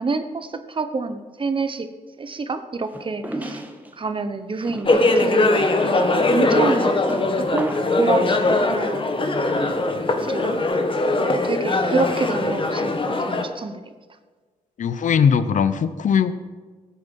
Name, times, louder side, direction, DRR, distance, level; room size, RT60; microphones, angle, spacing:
voice 1, 0.0-1.9 2.2-3.6 3.9-7.0 7.4-9.1 9.7-10.6 11.4-13.9, right 3 dB, 40° right, 10 dB, 1.0 m, -27 dB
sound 1, 2.9-3.9 4.6-8.0, right 1 dB, 10° right, 1.5 m, -34 dB
sound 2, 4.8-13.4, left 2 dB, 40° left, 1.4 m, -21 dB
voice 2, 14.8-16.4, left 7 dB, 65° left, 12 dB, 0.7 m, -20 dB
14.5 x 8.5 x 5.4 m, 1.4 s
cardioid pair, 80°, 14 cm